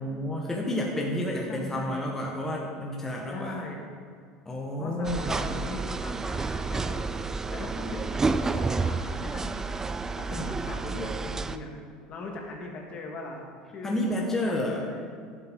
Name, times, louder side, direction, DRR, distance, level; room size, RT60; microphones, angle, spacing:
voice 1, 0.0-3.6 4.4-5.6 10.3-10.5 13.8-14.8, left 1 dB, 15° left, -2 dB, 1.3 m, -30 dB
voice 2, 1.5-2.0 3.3-3.8 4.8-7.0 7.5-9.5 10.2-11.7 12.1-13.4 13.7-15.0, left 2 dB, 45° left, 0 dB, 1.9 m, -40 dB
sound 1, 5.0-11.6, right 4 dB, 20° right, 0.4 m, -30 dB
10.5 x 7.7 x 3.8 m, 2.2 s
hypercardioid pair, 85°, 3 cm